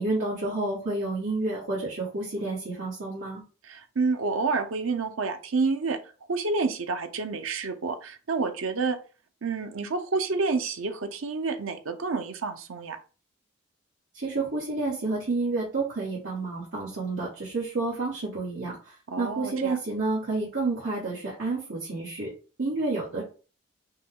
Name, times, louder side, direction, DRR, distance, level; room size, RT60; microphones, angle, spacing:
voice 1, 0.0-3.4 14.1-22.3 22.6-23.2, right 3 dB, 70° right, -7 dB, 1.5 m, -30 dB
voice 2, 3.7-6.0 6.3-9.0 9.4-13.0 19.1-19.8, right 4 dB, 90° right, 8 dB, 0.7 m, -29 dB
5.3 x 2.4 x 3.7 m, 0.36 s
head